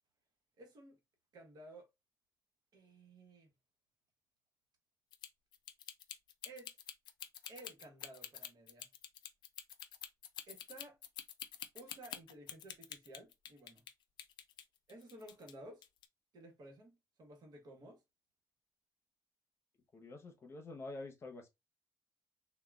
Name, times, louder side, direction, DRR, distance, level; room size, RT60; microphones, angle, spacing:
voice 1, 0.6-1.0 1.3-1.9 2.7-3.5 6.4-6.8 7.5-8.9 10.5-11.0 11.7-13.8 14.9-15.8 16.3-18.0, right 1 dB, 65° right, 1.1 m, -55 dB
sound 1, 5.1-13.9 14.2-15.5 15.8-16.0, left 10 dB, 90° left, 0.4 m, -48 dB
voice 2, 19.9-21.5, left 2 dB, 35° left, 0.8 m, -47 dB
3.5 x 2.2 x 2.2 m
cardioid pair, 125°, 7 cm